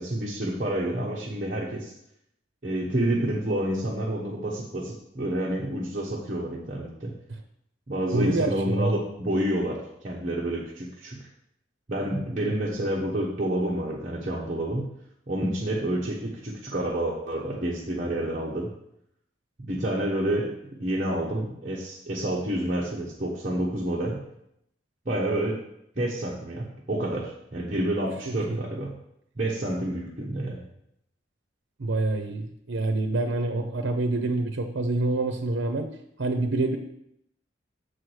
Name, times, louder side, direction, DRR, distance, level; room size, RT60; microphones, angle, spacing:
voice 1, 0.0-1.9 2.6-7.1 7.9-11.2 11.9-14.9 15.3-18.7 19.6-24.2 25.0-25.6 25.9-28.9 29.4-30.6, right 1 dB, 40° right, -5 dB, 1.1 m, -29 dB
voice 2, 8.1-8.9 28.5-28.6 31.8-35.9 36.2-36.8, right 2 dB, 85° right, 5 dB, 0.7 m, -26 dB
7.0 x 4.8 x 6.3 m, 0.77 s
head